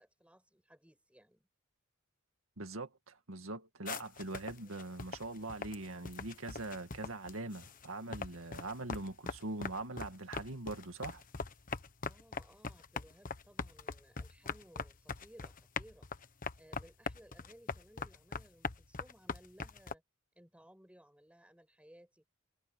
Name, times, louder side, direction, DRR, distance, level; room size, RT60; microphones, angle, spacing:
voice 1, 0.0-1.5 4.5-4.9 12.1-16.1 16.6-20.0 20.4-22.2, equal, 5° right, 7.1 m, -61 dB
voice 2, 2.6-11.2, right 2 dB, 75° right, 2.2 m, -42 dB
sound 1, 3.9-7.9 8.1-19.9, left 4 dB, 40° left, 1.2 m, -42 dB
head